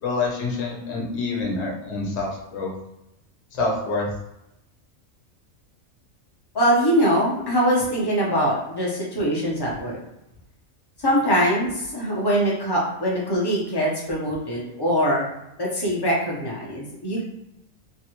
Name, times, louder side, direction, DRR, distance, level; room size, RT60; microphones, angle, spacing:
voice 1, 0.0-2.7 3.5-4.1, left 3 dB, 60° left, -2 dB, 1.1 m, -27 dB
voice 2, 6.5-10.0 11.0-15.2 15.6-17.2, equal, 25° left, -4 dB, 0.6 m, -22 dB
3.3 x 2.3 x 2.9 m, 0.85 s
omnidirectional pair, 1.4 m